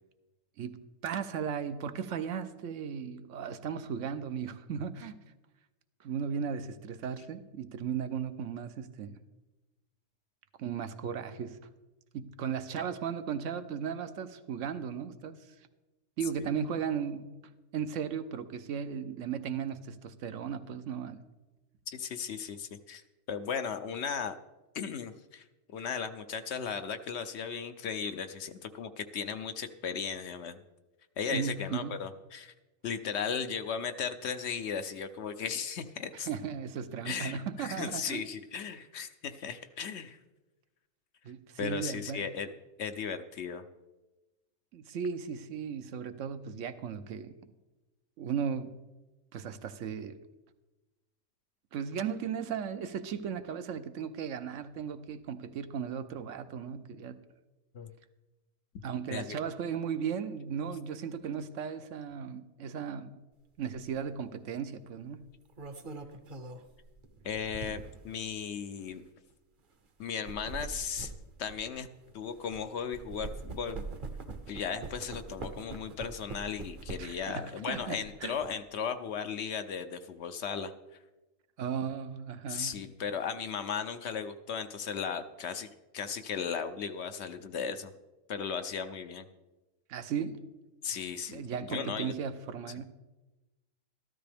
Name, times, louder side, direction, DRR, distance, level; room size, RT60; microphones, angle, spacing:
voice 1, 1.0-5.2 6.0-9.2 10.6-11.6 12.1-15.5 16.2-17.3 17.7-21.2 31.3-32.0 36.1-38.2 41.2-42.2 44.7-47.5 48.2-48.7 49.3-50.2 51.7-57.2 58.8-63.2 63.6-65.2 77.0-78.3 81.6-82.7 89.9-90.4 91.3-92.8, right 7 dB, 75° right, 11 dB, 1.0 m, -36 dB
voice 2, 21.9-23.0 23.3-24.4 24.7-25.4 25.7-30.6 31.2-32.5 32.8-36.3 37.0-40.2 41.6-42.5 42.8-43.6 57.7-57.9 59.1-59.4 67.2-69.0 70.0-71.1 71.4-71.9 72.1-73.8 74.5-80.7 82.5-87.9 88.3-89.3 90.8-92.1, left 6 dB, 65° left, 9 dB, 0.8 m, -36 dB
sound 1, 63.8-64.0 65.2-68.1 68.8-68.9 70.0-72.6 72.9-77.3 77.7-78.5, right 3 dB, 45° right, 0.9 m, -43 dB
13.5 x 12.5 x 3.4 m, 1.1 s
omnidirectional pair, 1.3 m